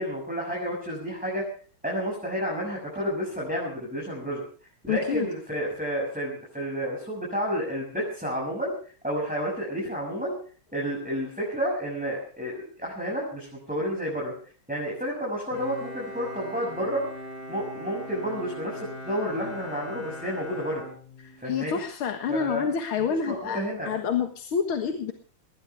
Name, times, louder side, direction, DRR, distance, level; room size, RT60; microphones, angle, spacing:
voice 1, 0.0-1.4 1.8-4.4 4.8-8.7 9.0-10.4 10.7-14.3 14.7-17.0 17.5-20.8 21.4-21.8 22.3-22.6 23.2-23.9, equal, 5° right, -3 dB, 7.1 m, -30 dB
voice 2, 4.9-5.3 21.2-25.1, left 6 dB, 85° left, 6 dB, 2.4 m, -28 dB
Bowed string instrument, 15.5-21.7, left 1 dB, 50° left, 8.7 m, -40 dB
20.5 x 19.5 x 3.5 m, 0.44 s
omnidirectional pair, 2.2 m